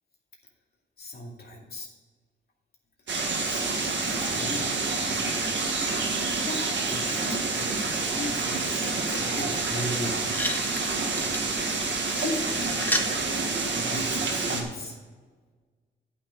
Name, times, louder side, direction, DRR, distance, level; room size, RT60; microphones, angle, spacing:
voice 1, 1.0-1.9 3.4-5.3 6.3-10.2 12.0-15.0, left 1 dB, 55° left, -2 dB, 2.4 m, -37 dB
sound 1, 3.1-14.6, right 3 dB, 70° right, 1.8 m, -28 dB
sound 2, 10.3-13.1 14.1-14.2, left 1 dB, 10° left, 1.0 m, -33 dB
9.4 x 5.8 x 6.3 m, 1.4 s
cardioid pair, 75°, 20 cm